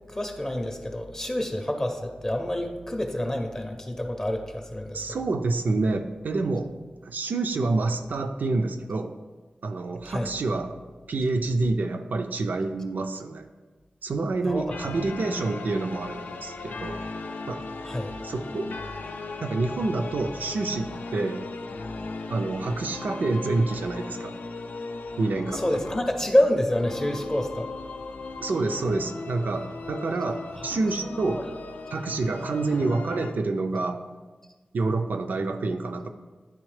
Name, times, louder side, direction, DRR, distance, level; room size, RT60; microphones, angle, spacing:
voice 1, 0.1-5.2 10.1-10.3 14.5-14.7 17.8-18.1 25.5-27.7 30.5-31.5, left 1 dB, 20° left, 4 dB, 0.5 m, -28 dB
voice 2, 4.9-6.7 7.0-9.2 9.6-10.7 11.1-13.5 14.0-17.0 17.5-17.6 18.2-18.7 19.4-21.4 22.3-24.3 25.2-25.6 28.4-31.4 31.9-34.0 34.7-36.1, right 3 dB, 80° right, 7 dB, 0.4 m, -27 dB
sound 1, 14.7-33.3, left 3 dB, 85° left, 0.5 m, -37 dB
9.8 x 3.5 x 3.2 m, 1.3 s
wide cardioid pair, 120°, 3 cm